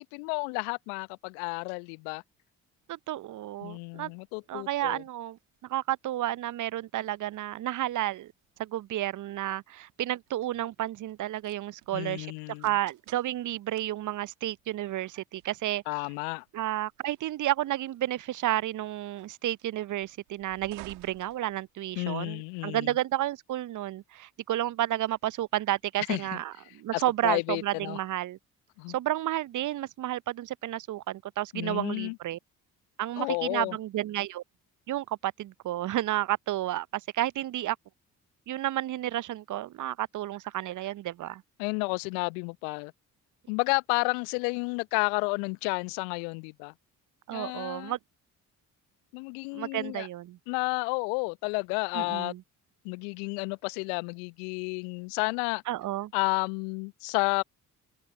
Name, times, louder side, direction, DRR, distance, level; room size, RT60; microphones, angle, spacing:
voice 1, 0.0-2.2 3.6-5.0 11.9-12.7 15.9-16.4 22.0-22.9 26.1-26.4 26.9-28.0 28.8-28.9 31.5-32.2 33.2-33.8 41.6-42.9 43.5-46.7 47.3-47.9 49.1-50.1 50.5-52.3 52.8-55.6 56.1-57.4, left 37 dB, 70° left, 1.0 m, -31 dB
sound 1, 2.8-22.2, right 33 dB, 75° right, 2.4 m, -58 dB
voice 2, 2.9-4.1 4.5-5.4 5.7-8.3 8.6-12.3 12.6-15.8 16.5-28.4 28.9-32.4 33.0-34.4 34.9-36.9 37.1-37.8 38.5-41.4 47.3-48.0 49.5-50.4 51.9-52.4 55.7-56.1, right 13 dB, 40° right, 0.7 m, -31 dB
open air
figure-of-eight pair, 45°, 45 cm